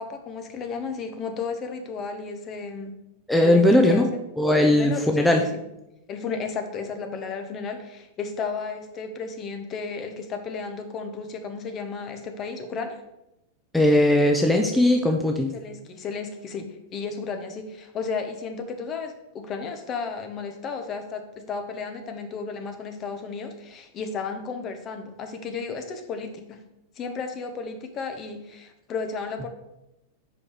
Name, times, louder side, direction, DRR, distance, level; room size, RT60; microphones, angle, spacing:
voice 1, 0.0-2.9 3.4-4.2 4.7-5.6 6.1-13.0 15.5-26.6 27.0-29.5, left 5 dB, 35° left, 6 dB, 1.0 m, -33 dB
voice 2, 3.3-4.1 4.4-5.4 13.7-15.5, left 1 dB, 5° left, 2 dB, 0.6 m, -19 dB
4.9 x 4.8 x 5.0 m, 0.88 s
hypercardioid pair, 110°, 0 cm